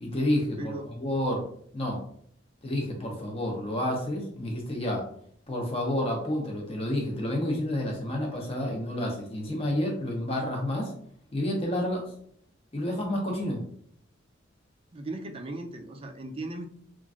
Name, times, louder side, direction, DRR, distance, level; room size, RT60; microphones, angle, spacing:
voice 1, 0.0-1.5 1.7-2.0 2.6-5.1 5.5-10.9 11.3-12.1 12.7-13.6, left 1 dB, 30° left, 0 dB, 0.7 m, -29 dB
voice 2, 14.9-16.7, right 2 dB, 30° right, 5 dB, 0.4 m, -37 dB
3.0 x 2.4 x 2.4 m, 0.62 s
head